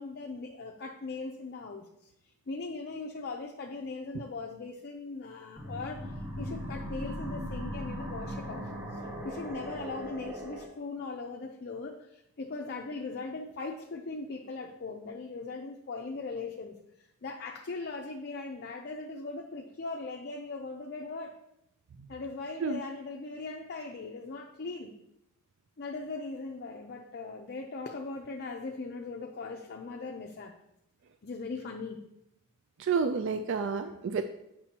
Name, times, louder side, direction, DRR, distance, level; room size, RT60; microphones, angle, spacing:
voice 1, 0.0-2.1 2.5-8.6 8.9-16.8 17.2-21.4 22.1-24.9 25.8-30.5 31.2-32.0, left 3 dB, 50° left, 2 dB, 0.5 m, -39 dB
sound 1, 5.6-10.7, equal, 15° right, 1.2 m, -38 dB
voice 2, 32.8-34.2, right 5 dB, 60° right, 8 dB, 0.3 m, -29 dB
8.5 x 6.0 x 2.9 m, 0.82 s
head